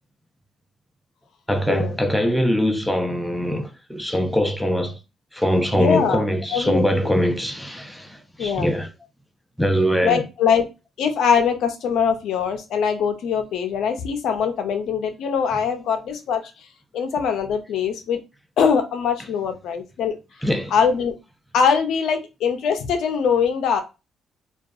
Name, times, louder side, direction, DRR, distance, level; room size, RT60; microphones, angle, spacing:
voice 1, 1.5-5.0 5.3-8.9 9.6-10.2 20.4-20.7, equal, ahead, 0.4 m, -22 dB
voice 2, 5.7-6.2 6.5-7.2 8.4-8.7 10.0-10.7 11.0-16.4 16.9-18.2 18.6-20.2 20.7-21.1 21.5-23.8, left 6 dB, 75° left, 0.5 m, -22 dB
2.6 x 2.3 x 2.3 m
cardioid pair, 90°, 0 cm